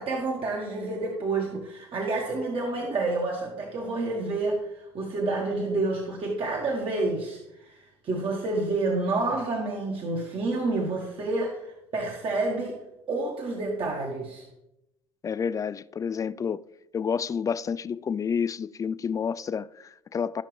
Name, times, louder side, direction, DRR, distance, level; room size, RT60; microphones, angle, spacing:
voice 1, 0.0-12.8 13.1-14.4, right 2 dB, 40° right, 1.7 m, -29 dB
voice 2, 15.2-16.6 16.9-20.4, left 6 dB, 25° left, 0.3 m, -29 dB
14.0 x 5.9 x 3.4 m
hypercardioid pair, 65°, 14 cm